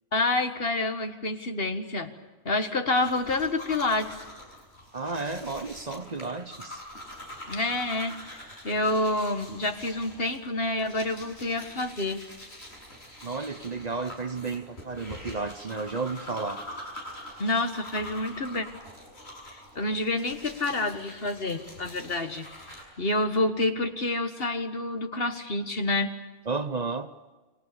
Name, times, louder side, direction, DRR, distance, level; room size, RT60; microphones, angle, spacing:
voice 1, 0.1-2.1 2.5-4.2 7.5-12.2 17.4-18.7 19.5-22.5 23.0-26.1, left 2 dB, 65° left, 1.9 m, -28 dB
sound 1, 3.0-22.8, left 1 dB, 90° left, 7.1 m, -44 dB
voice 2, 4.9-6.8 13.2-16.7 26.5-27.1, right 4 dB, 40° right, 1.1 m, -32 dB
30.0 x 23.0 x 6.9 m
omnidirectional pair, 1.1 m